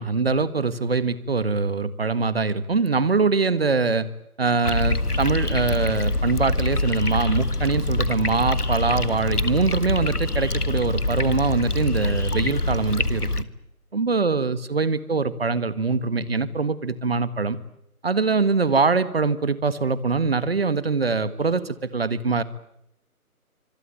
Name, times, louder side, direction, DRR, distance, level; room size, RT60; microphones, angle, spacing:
voice 1, 0.0-4.1 4.4-13.5 13.9-17.6 18.0-22.4, right 4 dB, 40° right, 16 dB, 1.7 m, -23 dB
sound 1, 4.6-13.4, left 2 dB, 85° left, 1.7 m, -25 dB
25.5 x 22.5 x 8.9 m, 0.79 s
figure-of-eight pair, 155°, 44 cm